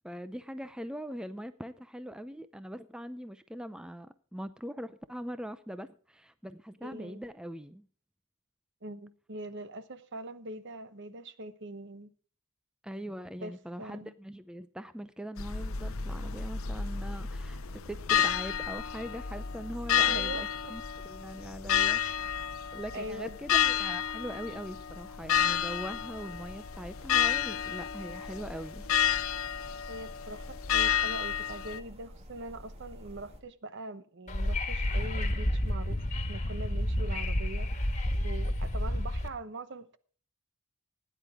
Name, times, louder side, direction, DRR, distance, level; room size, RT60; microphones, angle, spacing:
voice 1, 0.0-7.8 12.8-28.9, equal, 5° right, 0.5 m, -42 dB
voice 2, 6.8-7.2 8.8-12.1 13.4-13.5 13.8-14.1 20.0-20.8 22.0-22.2 22.9-23.4 29.9-37.7 38.2-40.0, right 2 dB, 55° right, 1.0 m, -42 dB
sound 1, 15.4-31.8, left 9 dB, 70° left, 0.8 m, -31 dB
sound 2, 25.2-33.4, equal, 30° right, 2.2 m, -51 dB
Wind / Subway metro underground, 34.3-39.3, left 1 dB, 35° left, 1.8 m, -30 dB
16.5 x 10.0 x 3.6 m
head